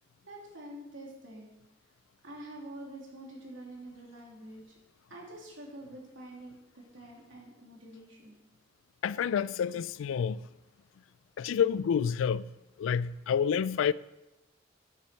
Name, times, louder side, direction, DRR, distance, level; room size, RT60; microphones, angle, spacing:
voice 1, 0.2-1.5 2.2-4.6 5.1-8.4, right 1 dB, 80° right, 2.9 m, -46 dB
voice 2, 9.0-10.4 11.4-12.5 12.8-13.9, left 7 dB, 85° left, 0.3 m, -28 dB
9.0 x 7.4 x 5.6 m
head